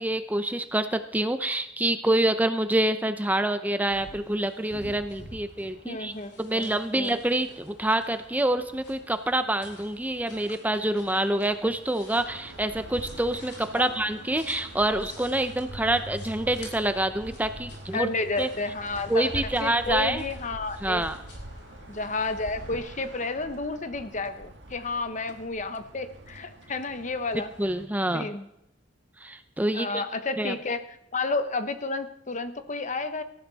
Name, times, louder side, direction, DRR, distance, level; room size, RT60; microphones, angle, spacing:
voice 1, 0.0-6.1 6.4-18.1 18.4-18.5 19.1-20.2 20.8-21.2 27.6-28.3 29.2-30.0 30.4-30.5, right 1 dB, 10° right, 9 dB, 0.7 m, -26 dB
sound 1, 3.9-22.8, left 1 dB, 65° left, 6.5 m, -49 dB
voice 2, 5.8-7.2 13.7-13.9 17.9-19.3 19.6-21.0 21.9-27.5 28.1-28.5 29.7-30.8 31.1-33.2, left 3 dB, 40° left, 10 dB, 1.1 m, -31 dB
sound 2, 12.1-27.9, right 1 dB, 70° right, 2.0 m, -44 dB
18.5 x 13.5 x 4.2 m, 0.79 s
head